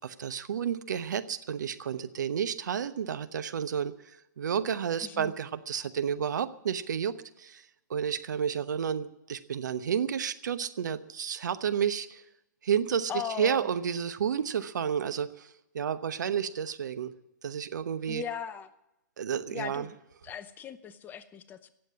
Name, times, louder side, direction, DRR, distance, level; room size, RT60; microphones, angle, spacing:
voice 1, 0.0-3.9 4.4-7.6 7.9-12.2 12.6-13.1 13.4-15.5 15.7-17.1 17.4-18.2 19.2-19.9, right 8 dB, 65° right, 11 dB, 1.0 m, -31 dB
voice 2, 5.0-5.3 13.1-13.6 18.1-18.7 19.5-19.9 20.2-21.7, left 8 dB, 20° left, 12 dB, 0.7 m, -38 dB
16.5 x 7.7 x 9.6 m, 0.87 s
hypercardioid pair, 125°, 10 cm